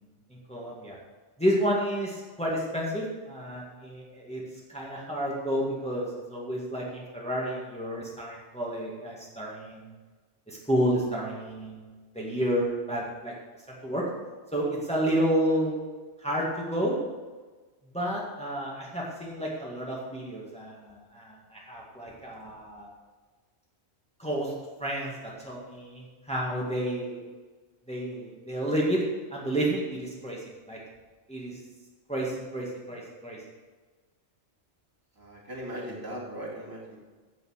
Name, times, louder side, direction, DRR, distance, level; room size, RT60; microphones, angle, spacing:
voice 1, 0.3-1.0 1.4-4.4 4.7-9.9 10.5-13.3 13.8-14.0 14.5-15.8 16.2-17.0 17.8-22.9 24.2-24.5 24.8-27.2 27.9-29.0 29.3-30.8 31.3-31.6 32.1-33.4, equal, 5° left, -4 dB, 2.1 m, -30 dB
voice 2, 35.2-37.0, right 1 dB, 20° right, -5 dB, 2.8 m, -38 dB
9.7 x 7.6 x 6.6 m, 1.3 s
omnidirectional pair, 1.2 m